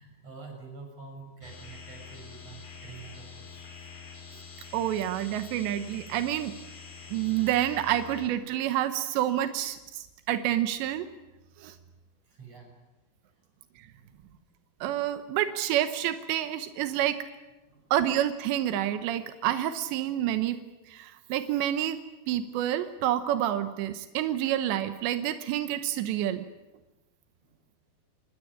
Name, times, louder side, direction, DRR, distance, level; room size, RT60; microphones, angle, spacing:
voice 1, 0.0-3.9 12.3-12.8 14.0-14.4 17.7-17.9 27.4-27.6, right 4 dB, 35° right, 3 dB, 7.3 m, -48 dB
sound 1, 1.4-8.3, left 6 dB, 55° left, 5.8 m, -46 dB
voice 2, 4.7-6.5 7.1-11.1 11.6-11.8 13.8-13.9 14.8-17.2 17.9-20.6 20.9-22.0 22.3-26.4, right 12 dB, 90° right, 9 dB, 3.3 m, -28 dB
27.5 x 19.5 x 9.9 m, 1.1 s
omnidirectional pair, 4.9 m